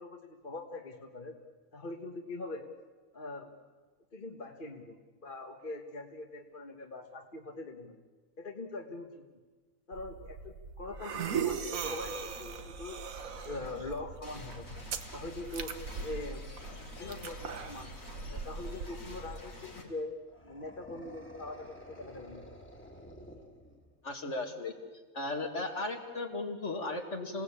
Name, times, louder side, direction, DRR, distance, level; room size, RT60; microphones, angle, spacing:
voice 1, 0.0-1.3 1.7-2.7 3.1-3.5 4.1-8.0 8.4-9.2 9.9-13.0 13.4-14.7 15.1-16.5 17.0-17.9 18.3-20.2 20.4-22.5, left 2 dB, 40° left, 3 dB, 1.5 m, -42 dB
sound 1, 9.9-19.4, right 6 dB, 80° right, 1.6 m, -39 dB
sound 2, 12.1-19.8, left 2 dB, 80° left, 4.3 m, -49 dB
sound 3, 20.3-24.1, equal, 10° left, 2.1 m, -51 dB
voice 2, 24.0-24.7 25.1-27.4, left 2 dB, 60° left, 3 dB, 2.7 m, -36 dB
27.5 x 18.0 x 8.7 m, 1.3 s
omnidirectional pair, 1.4 m